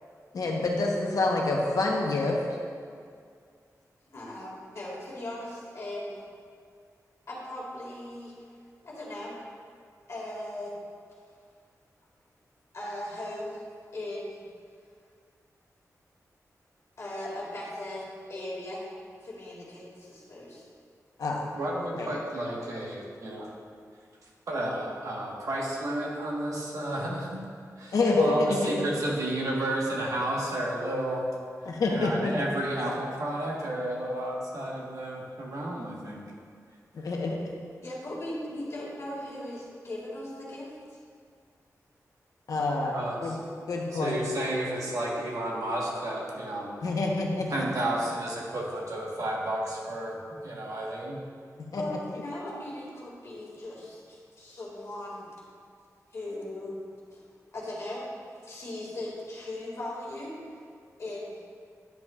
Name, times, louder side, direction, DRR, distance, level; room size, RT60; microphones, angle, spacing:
voice 1, 0.3-2.4 21.2-21.5 22.0-22.2 27.9-28.8 31.6-32.3 36.9-37.4 42.5-42.9 43.2-43.4 43.7-44.2 46.8-47.5 51.7-51.8, left 3 dB, 80° left, -1 dB, 1.0 m, -27 dB
voice 2, 4.1-6.2 7.3-8.3 8.8-9.4 10.1-10.7 12.7-13.6 13.9-14.5 17.0-18.8 19.2-20.6 37.8-40.7 51.7-55.3 56.1-56.8 57.1-57.2 57.5-58.1 58.4-60.4 61.0-61.4, left 1 dB, 50° left, -5 dB, 2.0 m, -38 dB
voice 3, 21.5-23.5 24.5-27.4 27.8-31.3 31.9-36.3 42.9-43.4 43.9-46.7 47.5-51.2, right 1 dB, 65° right, -3 dB, 1.3 m, -32 dB
10.5 x 7.9 x 2.4 m, 2.2 s
wide cardioid pair, 165°, 6 cm